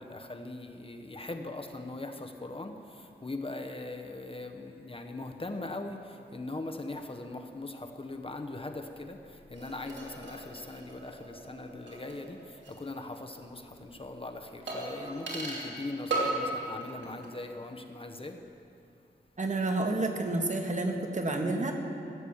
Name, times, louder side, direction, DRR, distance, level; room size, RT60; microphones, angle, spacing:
voice 1, 0.0-18.5, left 2 dB, 30° left, 5 dB, 0.9 m, -40 dB
sound 1, 9.5-12.9 13.1-13.2 14.7-15.8 16.1-16.5 16.8-17.4 17.6-17.7, right 2 dB, 90° right, 2.8 m, -37 dB
voice 2, 19.4-21.7, right 2 dB, 45° right, 3 dB, 1.5 m, -29 dB
15.0 x 8.7 x 7.1 m, 2.6 s
wide cardioid pair, 75°, 18 cm